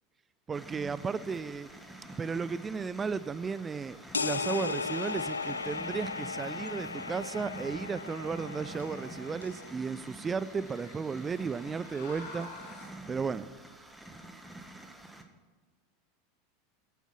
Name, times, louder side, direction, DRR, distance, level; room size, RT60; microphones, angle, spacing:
sound 1, 0.5-15.2, right 1 dB, 5° right, 1.6 m, -47 dB
voice 1, 0.5-1.7 2.2-12.5 13.1-13.5, right 5 dB, 20° right, 17 dB, 0.5 m, -34 dB
sound 2, 0.7-13.0, left 3 dB, 60° left, 4.7 m, -54 dB
sound 3, 4.1-9.7, left 4 dB, 85° left, 0.5 m, -36 dB
14.5 x 9.3 x 6.0 m, 1.4 s
figure-of-eight pair, 85°, 0 cm